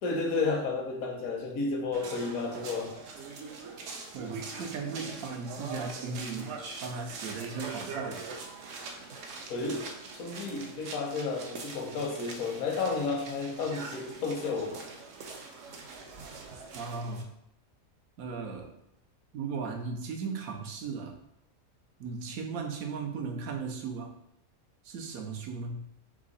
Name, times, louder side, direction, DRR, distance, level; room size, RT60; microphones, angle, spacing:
voice 1, 0.0-3.0 9.5-14.8, left 4 dB, 85° left, 3 dB, 1.2 m, -32 dB
sound 1, 1.9-17.2, right 4 dB, 70° right, 1.0 m, -43 dB
voice 2, 4.1-6.5 6.8-8.3 16.7-17.3 18.2-18.7 19.3-21.2 22.0-24.1 24.8-25.8, right 5 dB, 90° right, 3 dB, 1.2 m, -36 dB
3.7 x 3.1 x 3.9 m, 0.77 s
omnidirectional pair, 1.4 m